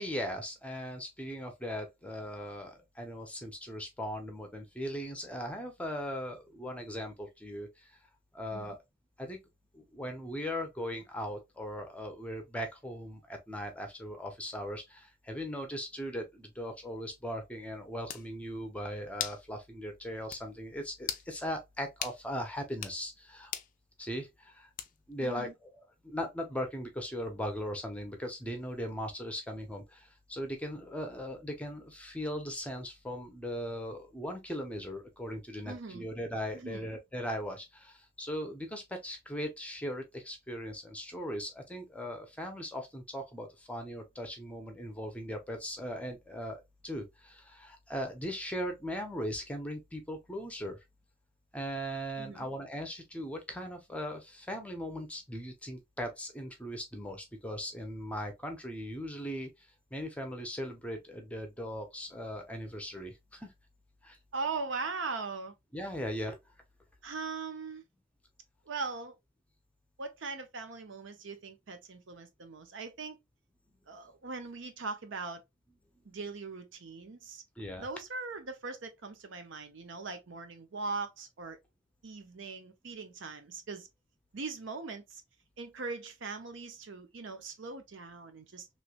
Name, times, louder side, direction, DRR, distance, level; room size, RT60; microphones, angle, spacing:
voice 1, 0.0-7.9 8.3-8.8 9.2-9.4 9.7-23.5 24.0-24.7 25.1-50.8 51.5-63.5 64.0-64.2 65.7-66.4 77.6-77.9, equal, 5° left, 0.6 m, -39 dB
sound 1, 17.6-17.7 18.1-18.3 19.2-19.4 19.8-19.9 20.3-20.4 21.0-21.3 22.0-22.2 22.7-23.0 23.5-23.7 24.8-25.1, left 10 dB, 40° left, 0.4 m, -38 dB
voice 2, 25.2-25.5 35.6-36.1 36.5-36.9 52.2-52.5 64.3-65.5 67.0-67.8 68.6-69.2 70.0-73.2 73.9-75.4 76.0-77.4 77.8-81.6 82.0-83.9 84.3-85.2 85.6-88.7, right 4 dB, 65° right, 0.7 m, -40 dB
3.2 x 3.0 x 2.3 m
head